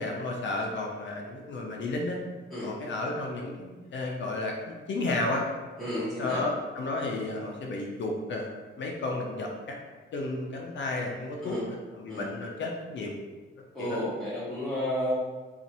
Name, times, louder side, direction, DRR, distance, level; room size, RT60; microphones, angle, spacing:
voice 1, 0.0-2.2 2.6-5.5 6.2-8.5 8.8-9.8 10.1-11.6 11.9-13.1 13.8-14.0, left 2 dB, 60° left, 0 dB, 0.5 m, -32 dB
voice 2, 5.8-6.5 11.4-11.7 12.1-12.3 13.7-15.1, left 1 dB, ahead, -11 dB, 0.8 m, -32 dB
2.6 x 2.5 x 4.2 m, 1.3 s
wide cardioid pair, 165°, 21 cm